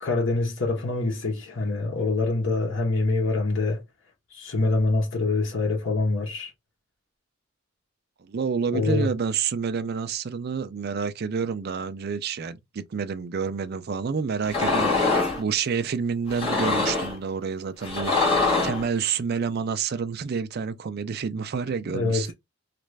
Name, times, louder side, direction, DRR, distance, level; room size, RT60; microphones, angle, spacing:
voice 1, 0.0-3.8 4.3-6.5 8.7-9.1 21.9-22.2, left 3 dB, 65° left, 1.2 m, -25 dB
voice 2, 8.2-22.3, right 6 dB, 50° right, 0.4 m, -29 dB
sound 1, 14.4-15.4 16.3-17.2 17.8-18.8, left 3 dB, 30° left, 1.9 m, -23 dB
3.1 x 2.5 x 3.2 m
head